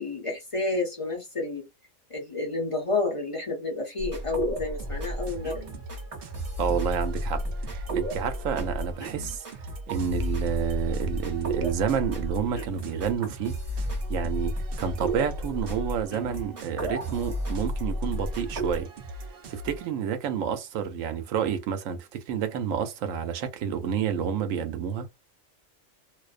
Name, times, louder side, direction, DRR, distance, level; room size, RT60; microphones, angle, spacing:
voice 1, 0.0-1.7 2.1-5.7 13.8-14.0, left 3 dB, 35° left, 0.6 m, -30 dB
sound 1, 4.0-18.8, right 1 dB, 30° right, 0.9 m, -32 dB
sound 2, 4.8-19.9, right 1 dB, 60° right, 0.6 m, -41 dB
voice 2, 6.6-13.6 14.1-18.9 19.5-25.1, right 7 dB, 90° right, 1.0 m, -29 dB
2.5 x 2.1 x 2.4 m
omnidirectional pair, 1.3 m